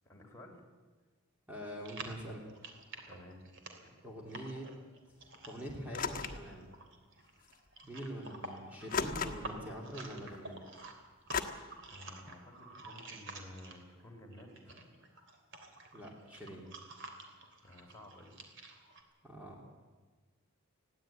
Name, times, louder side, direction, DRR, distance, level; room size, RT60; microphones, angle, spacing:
voice 1, 0.0-0.6 3.1-3.4 3.8-3.9 11.9-14.8 17.6-18.4, left 1 dB, 15° left, -2 dB, 3.5 m, -53 dB
voice 2, 1.5-2.5 4.0-4.7 5.5-6.7 7.9-10.6 15.9-16.7 19.2-19.7, equal, 5° right, -2 dB, 2.8 m, -44 dB
sound 1, 1.8-14.0 14.3-19.0, right 3 dB, 60° right, 3.0 m, -50 dB
sound 2, 5.9-6.5 7.5-7.6 8.9-9.6 11.3-11.4, left 6 dB, 40° left, 1.4 m, -35 dB
20.5 x 16.0 x 8.9 m, 1.3 s
head